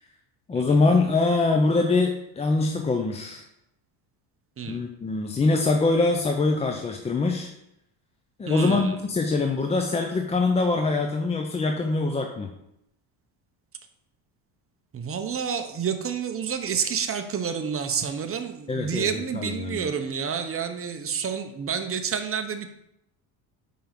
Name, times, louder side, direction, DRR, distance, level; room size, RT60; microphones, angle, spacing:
voice 1, 0.5-3.4 4.7-7.5 8.4-12.5 18.7-19.9, left 3 dB, 15° left, 4 dB, 0.4 m, -24 dB
voice 2, 8.5-9.0 14.9-22.7, right 7 dB, 30° right, 7 dB, 0.8 m, -29 dB
5.6 x 5.1 x 5.8 m, 0.82 s
cardioid pair, 115°, 49 cm